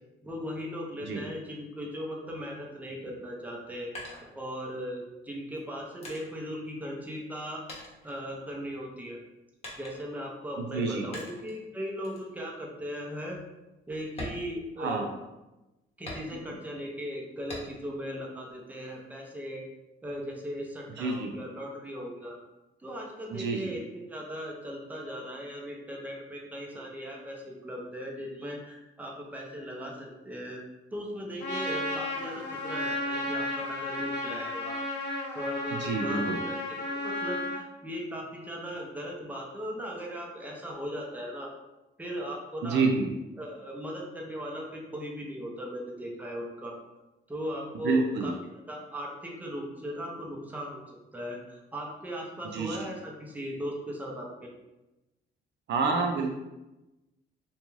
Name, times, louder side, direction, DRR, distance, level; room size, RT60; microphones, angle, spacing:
voice 1, 0.2-3.9 4.4-7.6 8.0-9.2 9.8-13.4 13.9-15.0 16.0-19.6 20.0-22.4 22.8-30.6 30.9-34.8 35.3-36.6 36.9-41.5 42.0-42.8 43.4-46.7 47.3-50.8 51.1-54.5, equal, 10° right, -2 dB, 0.6 m, -38 dB
sound 1, 3.5-4.9 5.5-7.4 7.7-8.8 9.6-10.3 11.1-11.6 12.0-12.3 12.7-12.8 13.3-13.4 14.1-15.3 16.1-16.7 17.5-18.0 18.4-19.3, left 1 dB, 30° left, 0.9 m, -44 dB
voice 2, 10.6-11.1 14.8-15.1 21.0-21.4 23.3-23.7 35.7-36.4 42.6-43.1 47.8-48.3 52.5-52.9 55.7-56.3, right 4 dB, 65° right, 2 dB, 0.4 m, -28 dB
Trumpet, 31.4-37.6, left 1 dB, 60° left, 0.6 m, -33 dB
2.5 x 2.3 x 3.0 m, 1.0 s
cardioid pair, 90°, 20 cm